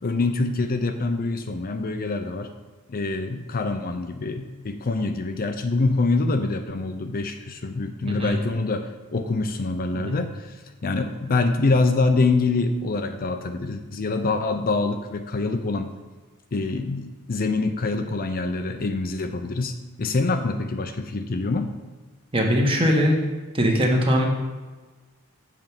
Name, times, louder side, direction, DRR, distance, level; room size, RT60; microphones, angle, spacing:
voice 1, 0.0-2.5 2.9-15.9 16.5-21.7, left 3 dB, 40° left, 7 dB, 0.5 m, -25 dB
voice 2, 22.3-23.2 23.5-24.3, equal, 25° right, 0 dB, 1.4 m, -21 dB
7.6 x 4.6 x 7.2 m, 1.3 s
head